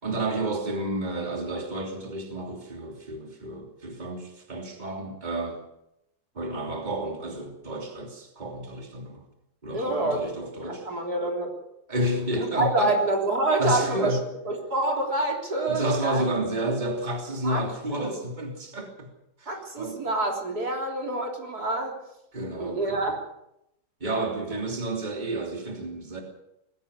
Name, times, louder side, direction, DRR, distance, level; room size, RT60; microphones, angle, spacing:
voice 1, 0.0-5.7 6.3-9.2 9.6-10.8 11.9-13.0 13.6-14.2 15.7-19.1 19.4-20.0 22.3-23.2 24.0-26.2, right 1 dB, 25° right, 2 dB, 3.2 m, -30 dB
voice 2, 9.7-10.3 10.6-11.5 12.4-14.2 14.5-16.3 17.4-17.6 19.5-22.0 22.6-23.2 24.5-24.6, right 2 dB, 60° right, 1 dB, 4.1 m, -27 dB
21.0 x 16.0 x 8.3 m, 0.82 s
omnidirectional pair, 1.9 m